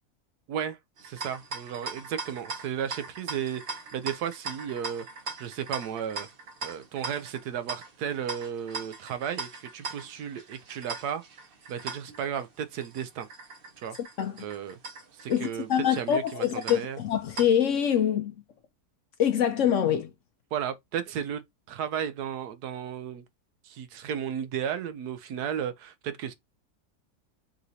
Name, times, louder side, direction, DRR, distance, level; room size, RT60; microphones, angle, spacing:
voice 1, 0.5-5.1 5.4-6.3 6.6-11.2 11.7-13.3 13.8-14.0 14.4-14.8 15.1-17.0 20.5-23.2 23.6-26.3, right 8 dB, 80° right, 1.2 m, -34 dB
sound 1, 1.0-17.8, right 3 dB, 45° right, 0.9 m, -41 dB
voice 2, 15.3-18.3 19.2-20.1, left 9 dB, 65° left, 0.8 m, -25 dB
4.8 x 3.1 x 2.7 m
omnidirectional pair, 1.7 m